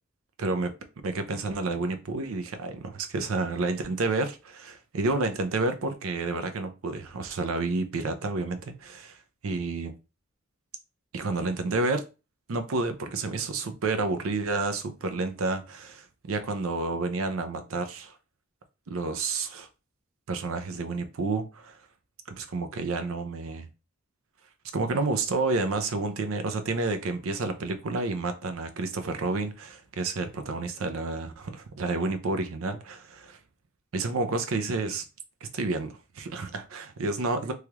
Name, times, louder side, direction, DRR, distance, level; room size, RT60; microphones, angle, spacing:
voice 1, 0.4-0.7 1.0-9.2 9.4-9.9 11.1-12.0 12.5-18.1 18.9-19.7 20.3-21.8 22.4-23.7 24.7-33.4 33.9-35.0 35.4-37.5, right 3 dB, 70° right, 0.5 m, -30 dB
3.2 x 2.3 x 2.9 m
head